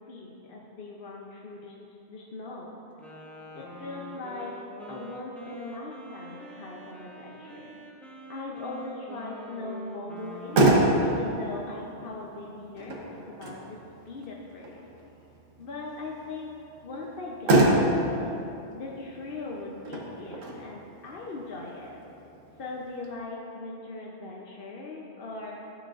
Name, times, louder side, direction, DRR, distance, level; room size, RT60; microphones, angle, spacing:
voice 1, 0.1-1.7 2.1-2.7 3.5-4.6 4.9-7.7 8.3-10.7 11.0-13.8 14.1-14.9 15.6-16.6 16.8-18.5 18.7-22.0 22.6-25.6, left 2 dB, 55° left, -2 dB, 0.9 m, -39 dB
Wind instrument woodwind instrument, 3.0-11.6, equal, ahead, 0.6 m, -46 dB
Motor vehicle (road), 10.2-23.1, right 1 dB, 85° right, 1.4 m, -28 dB
13.0 x 6.7 x 2.5 m, 2.9 s
omnidirectional pair, 1.3 m